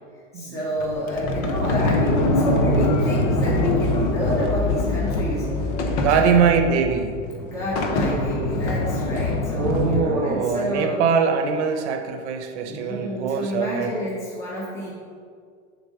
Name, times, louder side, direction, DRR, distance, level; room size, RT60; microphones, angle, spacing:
voice 1, 0.3-5.5 5.9-6.6 7.4-11.0 12.7-14.9, equal, 5° left, -7 dB, 1.1 m, -29 dB
Sliding door, 0.8-10.0, left 2 dB, 25° left, 0.4 m, -23 dB
voice 2, 6.0-7.2 9.5-13.9, right 6 dB, 60° right, 6 dB, 0.9 m, -22 dB
7.1 x 3.8 x 6.4 m, 2.1 s
supercardioid pair, 160°, 39 cm